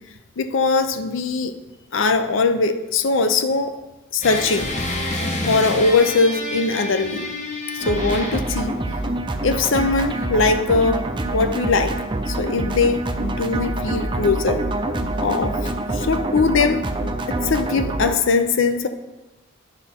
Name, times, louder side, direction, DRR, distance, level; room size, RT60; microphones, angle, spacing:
voice 1, 0.4-1.5 1.9-3.8 4.1-4.7 5.5-7.3 7.7-8.8 9.4-12.0 12.3-14.6 15.2-16.8 17.3-18.9, left 4 dB, 70° left, 8 dB, 0.6 m, -21 dB
sound 1, 4.2-8.7, left 1 dB, 35° left, 1.0 m, -28 dB
sound 2, 7.8-18.2, right 1 dB, 25° right, 0.5 m, -26 dB
11.0 x 5.6 x 4.3 m, 1.1 s
head